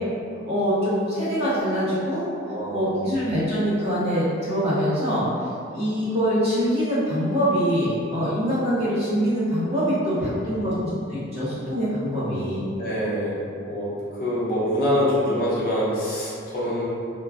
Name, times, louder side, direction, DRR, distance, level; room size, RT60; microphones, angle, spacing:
voice 1, 0.5-2.2 2.7-5.2 5.7-10.7 11.1-12.6, equal, 35° right, -11 dB, 1.0 m, -24 dB
voice 2, 2.4-3.1 10.2-10.7 12.8-16.9, equal, 50° left, -9 dB, 0.7 m, -26 dB
2.3 x 2.1 x 3.5 m, 2.4 s
head